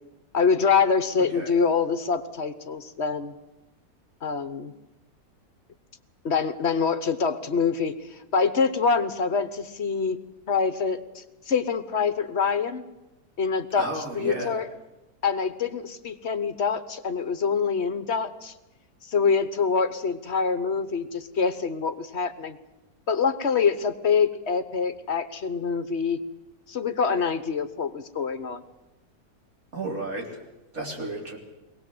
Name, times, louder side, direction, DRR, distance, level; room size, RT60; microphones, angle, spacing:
voice 1, 0.3-3.3 4.2-4.7 6.2-10.2 10.5-12.8 13.4-14.7 15.2-18.5 19.0-22.6 23.1-26.2 26.7-28.6, left 5 dB, 50° left, 11 dB, 1.2 m, -25 dB
voice 2, 13.8-14.6 29.7-30.3 30.7-31.4, right 2 dB, 60° right, 0 dB, 4.0 m, -32 dB
23.0 x 18.5 x 7.8 m, 1.0 s
omnidirectional pair, 1.7 m